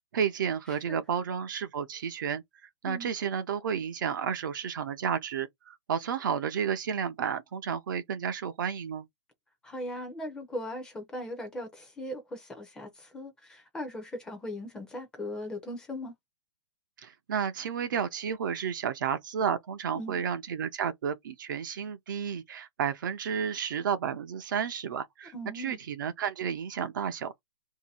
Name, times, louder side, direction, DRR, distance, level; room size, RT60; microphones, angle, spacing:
voice 1, 0.1-2.4 2.8-9.1 17.0-27.4, right 7 dB, 45° right, 0.5 m, -32 dB
voice 2, 9.6-16.1 19.9-20.2 25.3-25.8, left 1 dB, 5° left, 0.6 m, -39 dB
2.7 x 2.6 x 4.1 m
hypercardioid pair, 170°, 15 cm